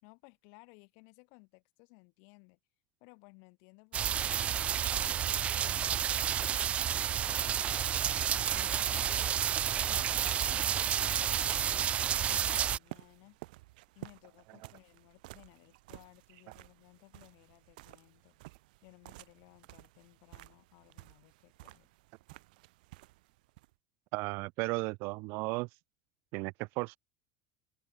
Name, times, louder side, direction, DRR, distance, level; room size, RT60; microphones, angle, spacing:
voice 1, 0.0-2.6 3.0-5.2 5.6-7.8 8.5-9.3 9.9-13.4 14.0-18.4 18.8-21.9, left 40 dB or more, 60° left, 4.0 m, -59 dB
sound 1, 3.9-12.8, right 9 dB, 25° right, 0.4 m, -30 dB
sound 2, 11.2-23.7, right 21 dB, 80° right, 2.4 m, -54 dB
voice 2, 24.1-25.7 26.3-27.0, right 27 dB, 55° right, 0.7 m, -34 dB
supercardioid pair, 145°, 5 cm